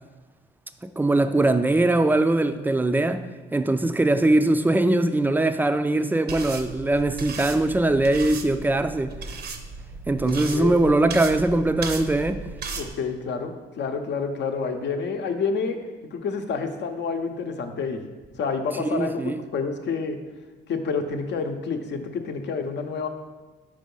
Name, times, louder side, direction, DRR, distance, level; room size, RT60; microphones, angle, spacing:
voice 1, 0.8-9.2 10.1-12.4 18.9-19.4, right 2 dB, 10° right, 0.3 m, -21 dB
sound 1, 6.3-12.9, right 4 dB, 50° right, 0.6 m, -36 dB
voice 2, 10.3-10.7 11.5-11.6 12.8-15.8 16.1-18.0 18.4-20.2 20.7-23.1, left 5 dB, 65° left, 0.7 m, -28 dB
5.1 x 4.7 x 5.3 m
cardioid pair, 90°, 20 cm